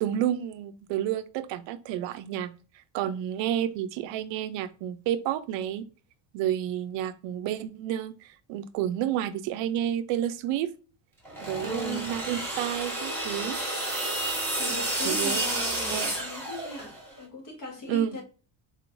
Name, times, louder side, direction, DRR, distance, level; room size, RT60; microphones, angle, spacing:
voice 1, 0.0-2.5 2.9-5.8 6.3-10.7 11.4-13.6 14.7-14.8 15.0-15.5 15.9-16.1 17.9-18.2, right 11 dB, 65° right, 0.5 m, -30 dB
sound 1, 11.2-17.1, right 1 dB, 5° left, 1.1 m, -31 dB
voice 2, 11.6-12.1 14.6-18.2, left 1 dB, 45° left, 1.3 m, -38 dB
4.1 x 3.1 x 2.5 m
cardioid pair, 175°, 47 cm